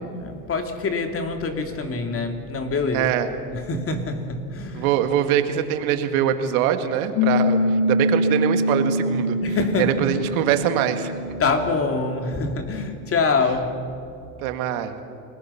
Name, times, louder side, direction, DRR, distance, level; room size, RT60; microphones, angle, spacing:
voice 1, 0.0-4.9 9.4-10.1 11.4-13.7, left 4 dB, 30° left, 5 dB, 2.8 m, -25 dB
voice 2, 2.9-3.3 4.7-9.4 9.8-11.1 14.4-15.0, right 10 dB, 75° right, 8 dB, 1.9 m, -23 dB
Piano, 7.2-12.3, left 1 dB, 75° left, 2.4 m, -24 dB
29.5 x 20.0 x 5.8 m, 2.5 s
supercardioid pair, 105°, 43 cm